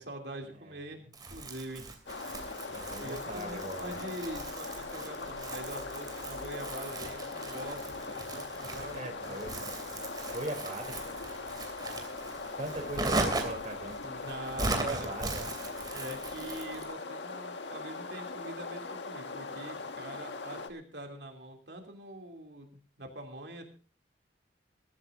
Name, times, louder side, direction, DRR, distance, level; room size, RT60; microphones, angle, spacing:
voice 1, 0.0-1.9 3.0-9.4 14.2-15.1 15.9-23.6, right 1 dB, 70° right, 3 dB, 2.9 m, -44 dB
Crumpling crinkling, 1.1-16.9, right 2 dB, 25° right, 3.0 m, -39 dB
sound 1, 2.1-20.7, left 3 dB, 90° left, 1.7 m, -40 dB
voice 2, 2.7-4.0 8.9-9.6 10.3-11.2 12.6-15.5, right 1 dB, 45° right, 3 dB, 3.4 m, -40 dB
22.5 x 13.5 x 2.7 m, 0.39 s
head